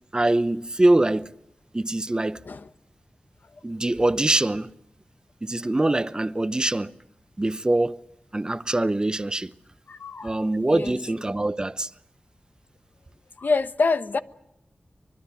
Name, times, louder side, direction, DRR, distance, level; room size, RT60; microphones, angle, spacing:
voice 1, 0.1-1.3 1.7-2.4 3.6-4.7 5.4-6.9 7.4-8.0 8.3-9.5 10.2-11.9, right 2 dB, 25° right, 0.9 m, -23 dB
voice 2, 9.9-10.4 10.7-11.0 13.4-14.2, left 3 dB, 70° left, 1.2 m, -26 dB
24.5 x 21.5 x 8.5 m
wide cardioid pair, 70°, 3 cm